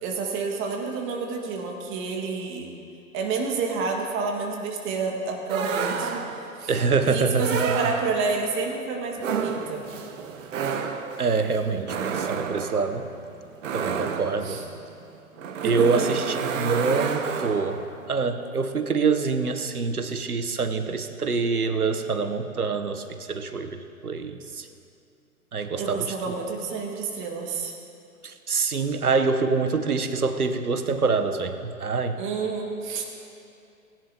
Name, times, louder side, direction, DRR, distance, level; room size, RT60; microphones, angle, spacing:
voice 1, 0.0-2.7 3.1-6.7 7.1-9.9 14.4-14.6 15.6-16.0 25.8-27.7 32.2-33.2, right 4 dB, 25° right, 1 dB, 1.8 m, -29 dB
sound 1, 5.5-6.6 7.4-8.4 9.2-17.9, right 6 dB, 60° right, 1.1 m, -30 dB
voice 2, 6.7-7.6 11.2-13.1 13.7-14.6 15.6-17.8 18.1-24.7 25.5-26.1 28.2-32.2, right 4 dB, 90° right, 9 dB, 1.0 m, -25 dB
20.0 x 10.0 x 2.9 m, 2.5 s
figure-of-eight pair, 110°, 44 cm